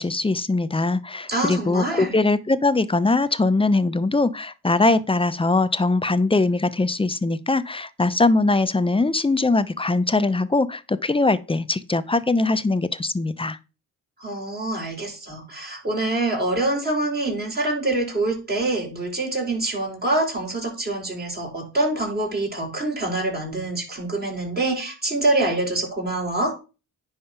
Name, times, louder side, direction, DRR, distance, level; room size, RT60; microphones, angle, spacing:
voice 1, 0.0-13.6, left 3 dB, 15° left, 0.8 m, -21 dB
voice 2, 1.3-2.2 14.2-26.5, right 2 dB, 25° right, 4.9 m, -25 dB
10.0 x 3.6 x 5.9 m
supercardioid pair, 70°, 38 cm